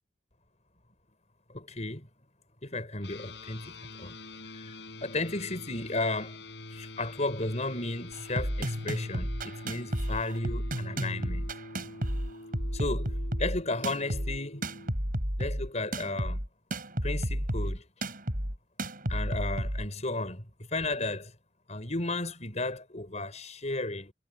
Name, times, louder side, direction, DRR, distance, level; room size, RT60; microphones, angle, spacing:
voice 1, 1.5-2.1 2.6-4.1 4.5-4.7 5.0-6.4 6.7-11.5 12.7-14.6 15.4-16.4 17.0-17.8 19.1-20.5 20.7-21.3 21.7-24.1, left 2 dB, 40° left, 6.2 m, -34 dB
sound 1, 3.0-14.9, left 2 dB, 75° left, 5.9 m, -45 dB
sound 2, 8.1-19.9, equal, 50° right, 7.4 m, -32 dB
head